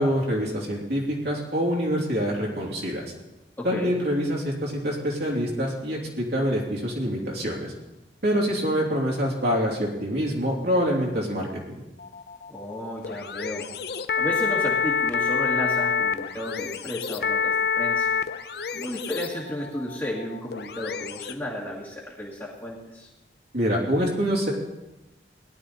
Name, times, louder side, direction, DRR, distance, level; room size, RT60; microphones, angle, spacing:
voice 1, 0.0-3.0 3.6-7.7 8.2-11.5 23.5-24.5, equal, 60° right, -4 dB, 3.1 m, -25 dB
voice 2, 3.6-3.9 12.5-13.7 14.2-18.1 18.7-23.1, equal, 15° left, -6 dB, 2.0 m, -33 dB
sound 1, 12.0-21.3, left 6 dB, 60° left, 0.6 m, -27 dB
18.5 x 11.5 x 4.2 m, 1.0 s
head